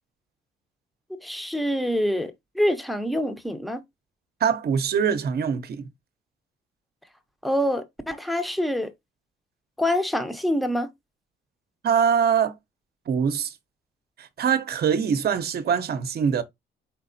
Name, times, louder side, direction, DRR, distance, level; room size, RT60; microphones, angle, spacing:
voice 1, 1.1-3.8 7.4-8.9 9.8-10.9, equal, ahead, 0.7 m, -26 dB
voice 2, 4.4-5.9 11.8-12.5 13.1-13.5 14.2-16.4, right 7 dB, 55° right, 0.7 m, -23 dB
4.5 x 4.0 x 2.6 m
cardioid pair, 90°, 20 cm